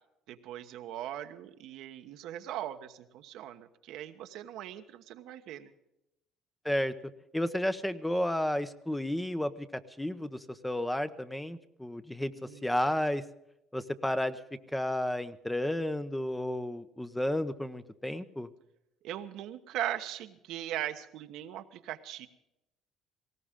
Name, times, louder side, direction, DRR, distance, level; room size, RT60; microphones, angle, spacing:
voice 1, 0.3-5.7 12.4-12.7 19.0-22.3, right 12 dB, 75° right, 7 dB, 1.2 m, -39 dB
voice 2, 7.3-12.3 12.6-13.2 13.7-14.4 14.7-18.5, left 1 dB, 5° left, 11 dB, 0.8 m, -32 dB
19.0 x 17.0 x 3.7 m, 0.87 s
cardioid pair, 115°, 0 cm